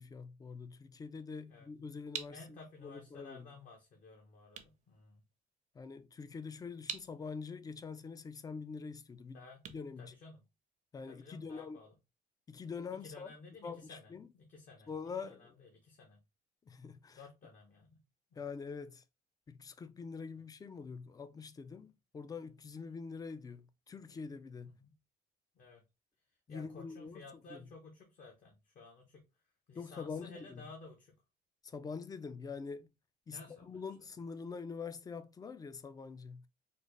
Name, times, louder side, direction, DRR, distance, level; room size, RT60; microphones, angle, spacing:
voice 1, 0.0-3.5 5.7-9.4 9.7-10.1 10.9-11.8 12.5-13.3 13.6-14.3 14.9-15.5 16.7-17.2 18.4-19.0 19.5-24.7 26.5-27.2 27.5-27.6 29.8-30.6 31.6-32.9 33.3-36.5, left 5 dB, 20° left, 0.4 m, -45 dB
sound 1, 1.7-10.9, right 8 dB, 45° right, 0.7 m, -50 dB
voice 2, 2.3-5.2 9.3-9.6 10.0-10.4 11.1-11.9 12.9-14.9 15.2-16.2 17.2-18.0 18.3-18.4 20.3-20.4 24.8-25.0 25.5-25.8 26.5-29.2 29.7-31.1 33.3-33.8, left 3 dB, 50° left, 1.0 m, -54 dB
4.0 x 2.1 x 3.2 m
cardioid pair, 110°, 17 cm